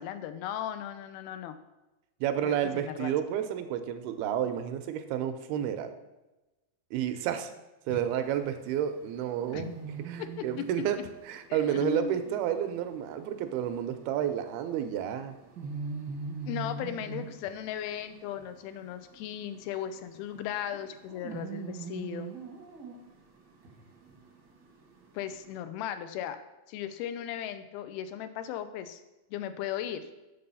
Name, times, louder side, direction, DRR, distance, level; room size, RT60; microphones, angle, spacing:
voice 1, 0.0-1.6 2.4-3.1 7.9-8.0 9.5-9.7 10.2-10.7 11.5-12.2 16.5-22.3 25.1-26.4 26.7-29.0 29.3-30.1, left 10 dB, 90° left, 10 dB, 2.5 m, -37 dB
voice 2, 2.2-5.9 6.9-7.5 7.9-9.7 10.0-11.0 11.2-15.3, right 10 dB, 85° right, 9 dB, 2.6 m, -30 dB
sound 1, 8.0-25.6, right 4 dB, 60° right, 1.0 m, -44 dB
6.9 x 6.7 x 5.5 m, 1.0 s
omnidirectional pair, 4.3 m